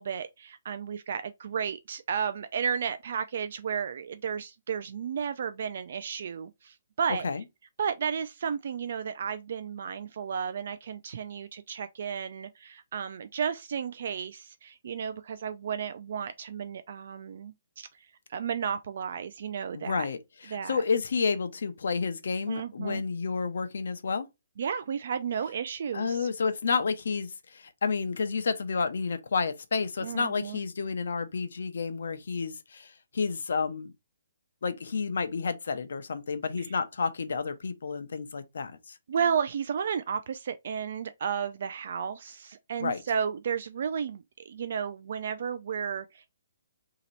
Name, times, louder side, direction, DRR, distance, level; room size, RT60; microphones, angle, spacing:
voice 1, 0.0-7.3 7.8-17.9 18.3-20.1 20.5-20.8 22.5-23.0 24.6-26.3 30.0-30.6 36.6-36.7 39.1-46.3, right 7 dB, 45° right, 0.3 m, -33 dB
voice 2, 19.7-20.2 20.5-24.3 25.9-33.9 34.6-39.0 42.8-43.0, left 5 dB, 65° left, 0.7 m, -30 dB
3.0 x 2.9 x 4.0 m
hypercardioid pair, 175°, 0 cm